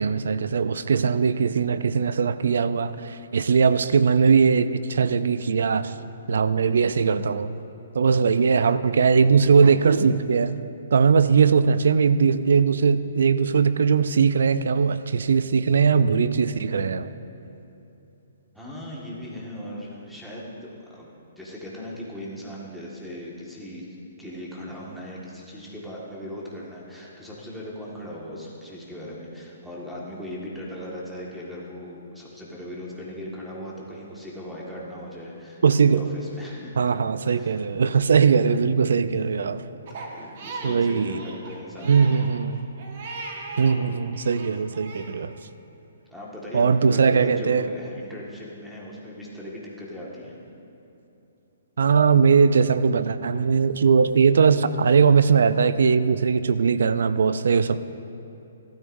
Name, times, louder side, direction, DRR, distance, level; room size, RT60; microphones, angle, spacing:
voice 1, 0.0-5.9 6.3-7.5 7.9-10.5 10.9-17.1 35.6-36.0 36.8-39.6 40.6-41.2 41.9-42.6 43.6-45.3 46.5-47.7 51.8-57.8, right 5 dB, 75° right, 14 dB, 0.4 m, -20 dB
voice 2, 18.5-21.1 21.3-23.8 24.2-36.9 37.3-37.6 38.2-38.3 40.1-42.1 43.5-43.6 46.1-50.3, left 1 dB, ahead, -7 dB, 1.7 m, -38 dB
Crying sobbing, 39.9-43.8 44.1-45.2, right 3 dB, 50° right, 1.4 m, -38 dB
15.0 x 12.5 x 2.7 m, 2.9 s
hypercardioid pair, 155°, 0 cm